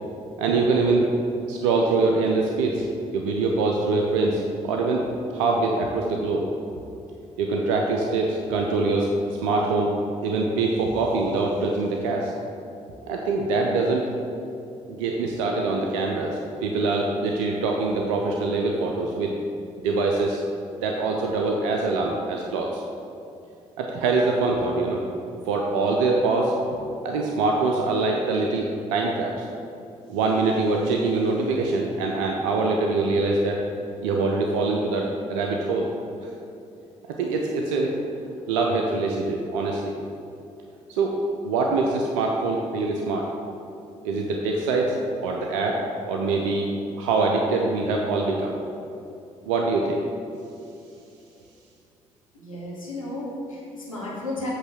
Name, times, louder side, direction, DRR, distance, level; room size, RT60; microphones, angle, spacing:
voice 1, 0.4-1.1 1.5-2.8 3.1-6.4 7.4-9.9 10.2-12.3 13.1-14.0 14.9-19.3 19.8-20.4 20.8-22.8 23.8-25.0 25.5-26.5 27.0-29.5 30.1-33.6 34.0-35.9 37.2-38.0 38.5-39.9 40.9-43.3 44.0-45.0 45.2-45.8 46.0-46.7 47.0-48.6 49.5-50.0, right 3 dB, 70° right, 0 dB, 0.5 m, -24 dB
voice 2, 52.3-54.5, left 1 dB, 85° left, -6 dB, 1.1 m, -33 dB
8.1 x 3.3 x 6.2 m, 2.7 s
figure-of-eight pair, 40°, 17 cm